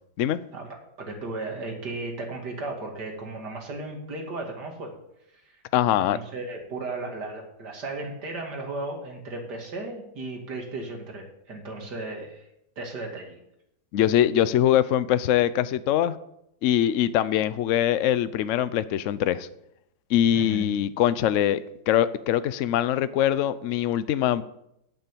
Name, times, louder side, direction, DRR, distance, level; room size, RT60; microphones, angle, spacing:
voice 1, 0.5-4.9 5.9-12.5 12.8-13.4 20.3-20.8, right 2 dB, 60° right, 1 dB, 2.9 m, -35 dB
voice 2, 5.7-6.2 13.9-16.2 16.6-19.5 20.1-24.4, left 11 dB, 80° left, 15 dB, 0.6 m, -23 dB
9.0 x 8.1 x 8.5 m, 0.79 s
omnidirectional pair, 2.0 m